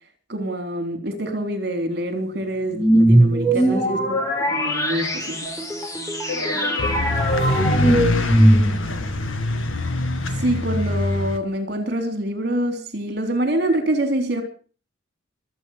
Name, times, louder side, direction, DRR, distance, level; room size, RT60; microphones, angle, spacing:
voice 1, 0.3-5.5 10.4-14.4, right 1 dB, 55° right, 3.5 m, -25 dB
sound 1, 2.7-9.0, right 1 dB, 15° left, 2.9 m, -20 dB
voice 2, 3.5-4.2 6.3-9.2, left 3 dB, 70° left, 5.3 m, -35 dB
sound 2, 5.5-8.9 9.2-9.3, right 1 dB, ahead, 3.8 m, -36 dB
sound 3, 6.8-11.4, left 1 dB, 90° left, 2.0 m, -23 dB
24.0 x 8.6 x 5.6 m
head